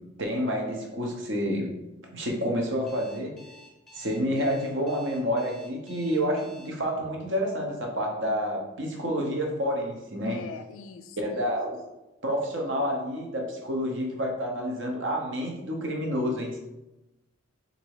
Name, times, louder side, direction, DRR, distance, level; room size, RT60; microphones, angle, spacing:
voice 1, 0.2-1.7 2.1-3.3 3.9-10.4 11.2-11.8 12.2-16.6, equal, 55° right, 1 dB, 0.9 m, -29 dB
Alarm, 2.9-6.7, left 2 dB, ahead, 0.9 m, -51 dB
voice 2, 10.2-11.4, left 5 dB, 65° left, 9 dB, 0.4 m, -42 dB
4.0 x 2.7 x 4.7 m, 0.99 s
head